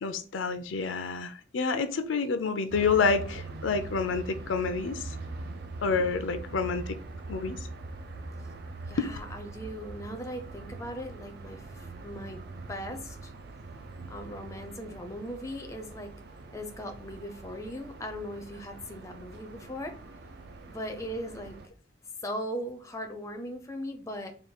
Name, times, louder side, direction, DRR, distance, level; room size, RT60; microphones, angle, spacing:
voice 1, 0.0-5.1 5.8-7.0 7.3-7.7 9.0-9.1, left 4 dB, 85° left, 0.5 m, -28 dB
sound 1, 2.7-21.7, right 3 dB, 55° right, 0.5 m, -43 dB
voice 2, 8.9-12.4 12.7-13.3 14.1-16.1 16.5-20.0 20.7-21.6 22.2-24.3, equal, 15° left, 0.5 m, -39 dB
3.7 x 2.2 x 4.2 m
head